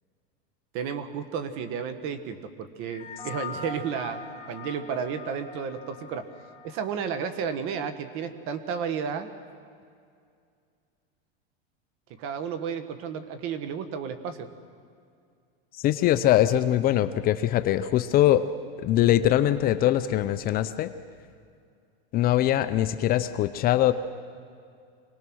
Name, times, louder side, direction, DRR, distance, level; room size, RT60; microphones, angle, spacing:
voice 1, 0.7-4.2 4.5-6.2 6.6-9.3 12.2-14.5, right 7 dB, 45° right, 10 dB, 1.5 m, -32 dB
sound 1, 2.8-7.5, left 4 dB, 10° left, 3.5 m, -42 dB
voice 2, 15.8-18.5 18.8-20.9 22.1-23.9, left 13 dB, 30° left, 11 dB, 0.6 m, -22 dB
25.5 x 19.0 x 6.3 m, 2.3 s
supercardioid pair, 150°, 30 cm